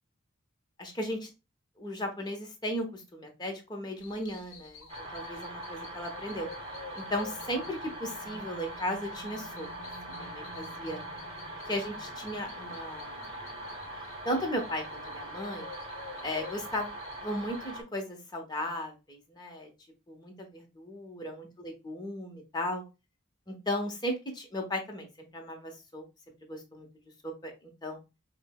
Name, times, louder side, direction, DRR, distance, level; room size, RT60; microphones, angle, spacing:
voice 1, 0.8-1.3 1.8-6.5 6.9-9.7 10.1-11.0 11.7-13.3 14.2-15.7 16.2-16.9 17.2-19.7 20.1-22.8 23.5-26.0 26.4-26.9 27.2-28.0, equal, 20° left, 2 dB, 0.9 m, -36 dB
sound 1, 4.0-17.8, left 3 dB, 90° left, 0.8 m, -50 dB
sound 2, 4.9-17.8, right 1 dB, 30° right, 0.9 m, -42 dB
5.2 x 2.1 x 2.2 m, 0.27 s
head